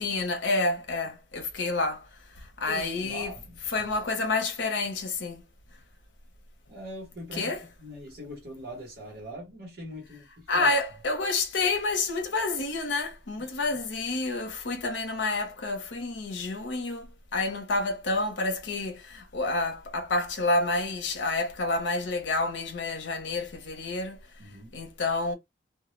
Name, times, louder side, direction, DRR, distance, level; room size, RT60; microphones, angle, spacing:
voice 1, 0.0-3.4 3.7-5.4 7.3-7.6 10.5-24.2 24.7-25.3, left 3 dB, 85° left, 0.7 m, -29 dB
voice 2, 2.7-3.6 6.7-10.7 13.4-13.5 24.4-24.8, equal, 60° right, 0.9 m, -42 dB
2.2 x 2.0 x 3.0 m
head